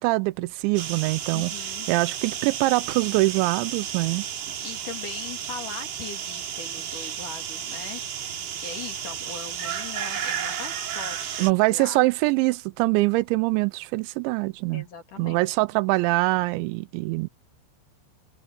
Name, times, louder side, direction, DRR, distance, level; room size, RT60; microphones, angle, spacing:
voice 1, 0.0-1.5 1.9-4.3 11.4-14.8 15.2-17.3, right 22 dB, 85° right, 2.8 m, -23 dB
sound 1, 0.8-11.5, right 9 dB, 60° right, 4.1 m, -33 dB
voice 2, 1.3-1.9 4.6-11.3 11.6-12.0 14.7-15.4, left 5 dB, 45° left, 3.7 m, -40 dB
omnidirectional pair, 5.6 m